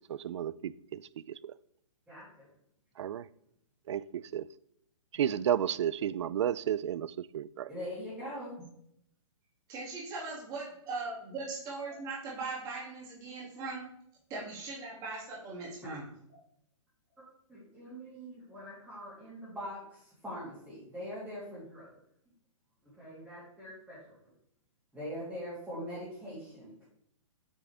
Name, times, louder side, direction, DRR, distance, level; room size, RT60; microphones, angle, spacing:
voice 1, 0.1-1.5 3.0-3.3 3.9-4.5 5.1-7.7, right 10 dB, 60° right, 0.4 m, -32 dB
voice 2, 2.1-2.5 7.7-8.6 17.5-21.9 23.0-24.0 24.9-26.8, equal, 5° right, 2.9 m, -42 dB
voice 3, 9.7-13.9 14.3-16.0, right 3 dB, 20° right, 2.5 m, -39 dB
7.9 x 6.0 x 3.5 m
hypercardioid pair, 160°, 17 cm